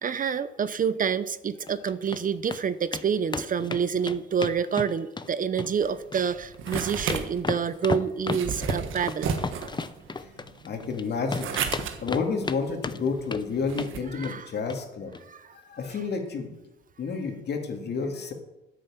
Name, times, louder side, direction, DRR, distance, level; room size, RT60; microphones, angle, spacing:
voice 1, 0.0-9.3 14.1-14.5 15.3-15.5, right 7 dB, 45° right, 14 dB, 0.7 m, -28 dB
sound 1, 1.7-2.2 2.5-2.6 2.9-3.0 3.3-5.3 5.6-6.3 6.5-11.0 11.3-12.6 12.8-13.4 13.7-13.9 14.2-14.4 14.7-14.8 15.1-15.2, left 4 dB, 20° left, 0.7 m, -33 dB
sound 2, 5.8-14.0, right 6 dB, 85° right, 1.4 m, -34 dB
voice 2, 10.6-11.6 12.0-15.1 15.6-16.5 17.0-18.3, left 5 dB, 55° left, 3 dB, 2.5 m, -30 dB
10.0 x 8.9 x 7.3 m, 0.96 s
cardioid pair, 90°, 20 cm